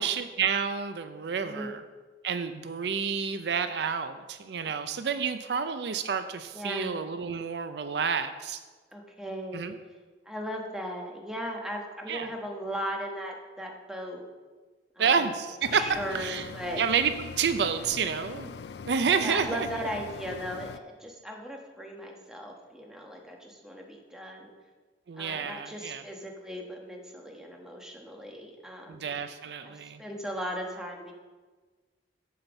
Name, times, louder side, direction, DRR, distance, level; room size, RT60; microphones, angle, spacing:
voice 1, 0.0-1.7 2.2-8.6 9.5-9.7 12.1-12.3 15.0-15.8 16.1-16.5 16.8-18.5 18.9-19.7 25.1-26.0 28.9-30.0, right 6 dB, 70° right, 10 dB, 0.5 m, -29 dB
voice 2, 6.5-6.9 8.9-9.7 10.2-14.3 15.0-15.3 15.6-16.8 19.2-24.5 25.2-29.1 30.0-31.1, equal, 5° right, 0 dB, 1.2 m, -37 dB
sound 1, 15.6-20.8, left 5 dB, 65° left, 0.4 m, -42 dB
8.6 x 5.8 x 7.1 m, 1.4 s
head